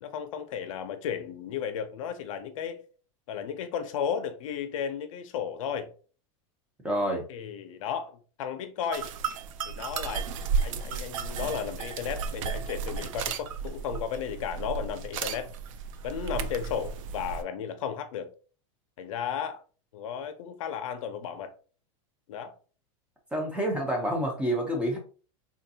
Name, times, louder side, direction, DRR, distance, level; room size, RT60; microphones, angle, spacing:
voice 1, 0.0-2.8 3.3-5.9 7.3-9.1 9.7-10.3 10.6-15.5 16.0-18.3 19.0-19.6 19.9-21.5 22.3-22.5, left 8 dB, 80° left, 0.6 m, -34 dB
voice 2, 6.8-7.3 23.3-25.0, right 1 dB, 5° right, 0.9 m, -28 dB
sound 1, 8.9-17.4, right 6 dB, 80° right, 0.4 m, -33 dB
3.8 x 2.6 x 2.7 m
supercardioid pair, 145°, 17 cm